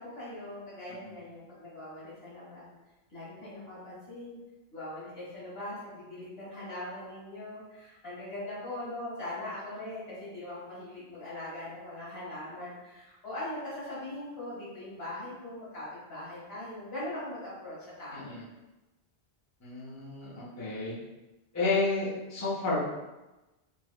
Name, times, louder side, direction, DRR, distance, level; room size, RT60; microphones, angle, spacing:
voice 1, 0.0-2.7 3.1-4.4 4.7-18.3, left 1 dB, 70° left, -9 dB, 1.9 m, -41 dB
voice 2, 18.1-18.4 19.6-20.9 21.5-22.8, left 3 dB, 15° left, -9 dB, 0.9 m, -31 dB
5.1 x 2.3 x 2.2 m, 1.0 s
omnidirectional pair, 1.1 m